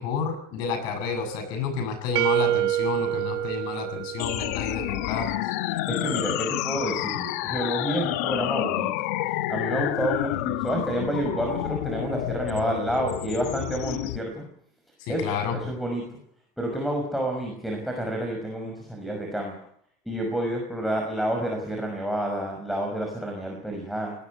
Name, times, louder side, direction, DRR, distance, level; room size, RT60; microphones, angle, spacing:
voice 1, 0.0-5.5 15.0-15.6, left 6 dB, 60° left, 8 dB, 7.5 m, -30 dB
sound 1, 2.2-5.0, right 14 dB, 55° right, 1.1 m, -27 dB
sound 2, 4.2-14.2, left 16 dB, 85° left, 1.0 m, -29 dB
voice 2, 5.7-8.9 9.2-14.5 15.1-16.1 16.6-19.6 20.0-24.1, right 1 dB, ahead, 0 dB, 5.8 m, -29 dB
22.5 x 18.5 x 8.4 m, 0.68 s
cardioid pair, 150°, 8 cm